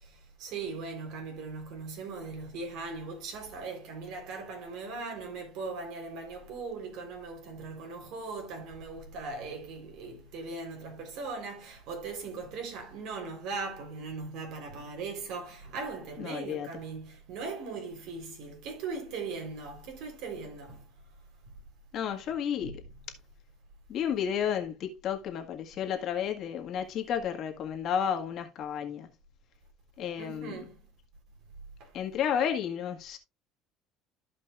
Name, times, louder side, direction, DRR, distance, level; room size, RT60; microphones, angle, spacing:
voice 1, 0.0-20.8 22.6-22.8 30.2-30.8 31.8-31.9, right 4 dB, 65° right, 3.7 m, -39 dB
voice 2, 16.2-16.7 21.9-22.8 23.9-29.1 30.0-30.6 31.9-33.2, left 8 dB, 50° left, 1.7 m, -32 dB
14.0 x 5.2 x 2.4 m
cardioid pair, 145°, 0 cm